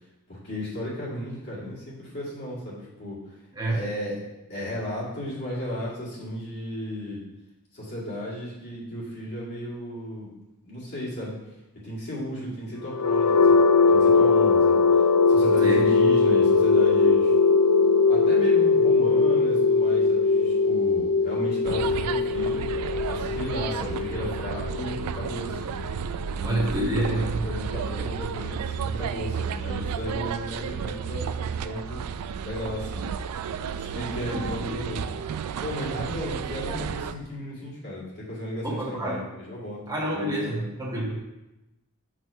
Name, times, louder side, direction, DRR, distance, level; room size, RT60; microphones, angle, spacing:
voice 1, 0.3-3.2 3.7-4.2 4.5-7.2 7.7-10.3 10.6-11.4 11.8-13.5 13.9-14.8 15.3-17.3 18.1-22.7 23.1-25.7 26.3-32.0 32.4-33.1 33.7-35.0 35.6-39.8 40.1-40.7, left 1 dB, 50° left, -8 dB, 2.2 m, -34 dB
sound 1, 12.8-26.7, left 4 dB, 75° left, 0.4 m, -21 dB
sound 2, 21.6-37.1, right 7 dB, 85° right, 0.3 m, -32 dB
voice 2, 26.4-27.4 34.3-34.9 38.6-39.2 39.9-41.2, right 1 dB, 20° right, -4 dB, 1.3 m, -28 dB
6.2 x 3.1 x 5.6 m, 0.97 s
head